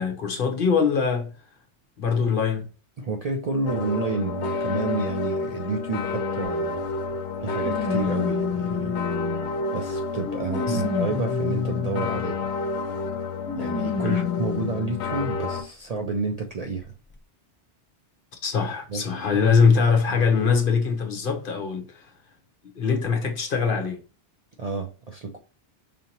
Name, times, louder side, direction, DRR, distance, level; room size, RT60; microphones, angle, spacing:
voice 1, 0.0-1.3 2.0-2.7 10.7-10.8 14.0-14.2 18.4-22.1 22.8-24.0, left 5 dB, 55° left, 1.0 m, -22 dB
voice 2, 3.0-6.8 7.4-9.0 9.7-12.5 13.6-16.9 18.9-19.0 20.1-20.2 24.6-25.4, right 4 dB, 55° right, 0.4 m, -30 dB
sound 1, 3.7-15.6, left 4 dB, 80° left, 0.9 m, -29 dB
sound 2, 6.4-6.5 7.6-9.7 10.2-12.3 13.5-14.9 15.6-15.7 16.8-16.9, left 6 dB, 15° left, 0.4 m, -29 dB
5.1 x 2.8 x 2.8 m
omnidirectional pair, 1.1 m